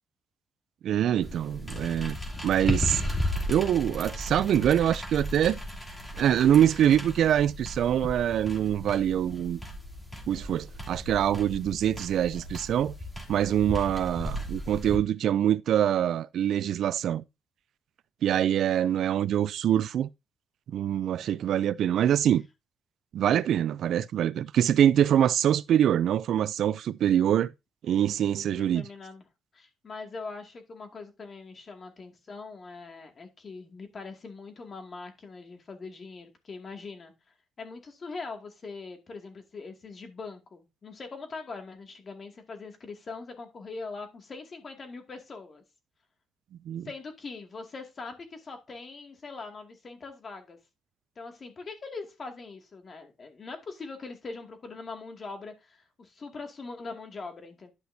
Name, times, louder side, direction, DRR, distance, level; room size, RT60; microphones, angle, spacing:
voice 1, 0.8-3.0 3.5-5.6 6.2-9.6 10.3-12.9 13.3-17.2 18.2-20.1 20.7-22.4 23.1-27.5 27.8-28.9 46.7-46.9, right 10 dB, 70° right, 0.3 m, -24 dB
sound 1, 1.2-15.0, left 1 dB, 15° left, 2.8 m, -35 dB
voice 2, 28.4-29.2 29.5-37.1 37.6-45.6 46.8-50.6 51.2-57.7, left 4 dB, 40° left, 2.2 m, -42 dB
11.5 x 5.8 x 2.7 m
cardioid pair, 90°, 0 cm